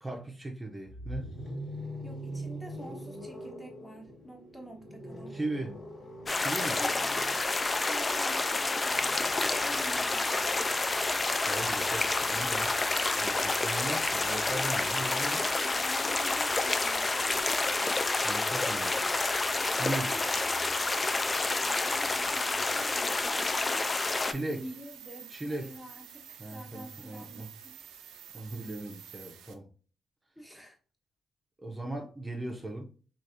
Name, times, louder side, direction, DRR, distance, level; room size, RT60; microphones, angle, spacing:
voice 1, 0.0-1.3 5.3-5.8 6.3-6.8 11.4-12.8 13.2-15.5 18.2-19.1 19.8-20.2 24.2-24.6 25.3-25.7 26.4-27.5 28.3-29.6 31.6-32.8, right 2 dB, 25° right, 0.6 m, -38 dB
sound 1, 0.9-12.8 14.1-17.7, equal, 60° left, 1.6 m, -45 dB
voice 2, 2.0-5.4 6.8-7.2 7.8-10.7 13.1-13.3 15.3-17.2 19.9-20.2 21.6-24.1 24.5-27.8 30.4-30.8, equal, 10° left, 1.1 m, -47 dB
sound 2, 6.3-24.3, left 3 dB, 30° left, 0.3 m, -29 dB
sound 3, 10.3-29.5, right 8 dB, 85° right, 0.4 m, -50 dB
3.3 x 2.5 x 2.5 m
supercardioid pair, 50°, 0 cm